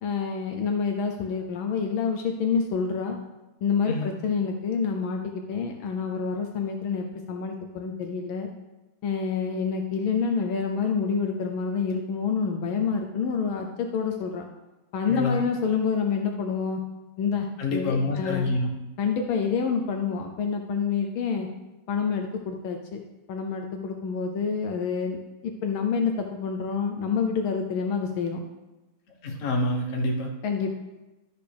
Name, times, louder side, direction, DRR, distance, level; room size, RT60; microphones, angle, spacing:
voice 1, 0.0-3.2 3.6-8.5 9.0-14.4 14.9-16.8 17.2-18.5 19.0-21.5 21.9-23.0 23.3-28.4 30.4-30.7, left 5 dB, 75° left, 3 dB, 1.5 m, -27 dB
voice 2, 3.9-4.2 15.1-15.5 17.6-18.7 29.2-30.3, left 2 dB, 45° left, 1 dB, 1.4 m, -27 dB
12.0 x 6.6 x 3.4 m, 1.0 s
omnidirectional pair, 2.4 m